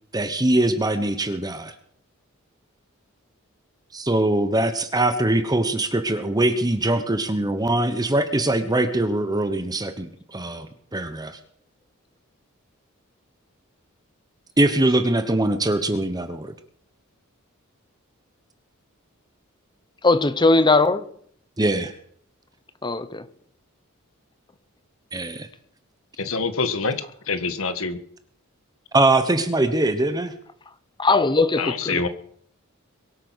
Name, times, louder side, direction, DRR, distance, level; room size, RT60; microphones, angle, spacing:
voice 1, 0.1-1.7 3.9-10.7 10.9-11.4 14.6-16.5 21.6-21.9 25.1-25.5 28.9-30.3, right 2 dB, 20° right, 1.1 m, -22 dB
voice 2, 20.0-21.1 22.8-23.3 31.0-32.1, left 3 dB, 20° left, 0.8 m, -19 dB
voice 3, 26.2-26.9 27.3-28.0 31.6-32.1, left 4 dB, 70° left, 1.6 m, -25 dB
23.0 x 8.5 x 6.3 m
head